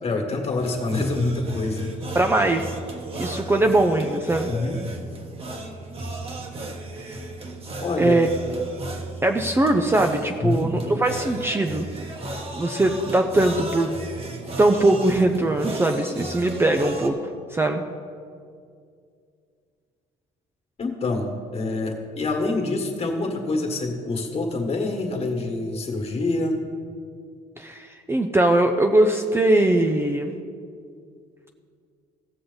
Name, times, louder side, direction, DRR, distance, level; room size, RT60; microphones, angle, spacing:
voice 1, 0.0-1.9 4.5-4.8 7.8-8.2 10.4-10.7 20.8-26.6, left 2 dB, 35° left, 2 dB, 1.6 m, -26 dB
sound 1, 0.6-17.1, right 1 dB, 35° right, 1.2 m, -35 dB
voice 2, 2.1-2.7 3.2-4.5 8.0-8.3 9.2-11.9 12.5-13.9 14.6-17.8 27.6-30.4, right 2 dB, 15° right, 4 dB, 0.5 m, -21 dB
16.0 x 6.4 x 3.9 m, 2.3 s
cardioid pair, 110°, 17 cm